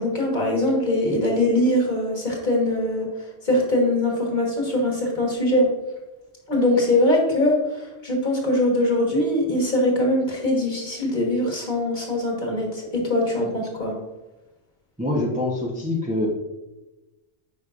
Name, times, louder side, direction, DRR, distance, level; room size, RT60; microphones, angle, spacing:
voice 1, 0.0-3.1 3.4-5.7 6.5-13.9, left 1 dB, 40° left, -1 dB, 1.4 m, -22 dB
voice 2, 15.0-16.3, left 2 dB, 10° right, -2 dB, 0.5 m, -25 dB
9.1 x 5.1 x 2.4 m, 1.1 s
omnidirectional pair, 1.3 m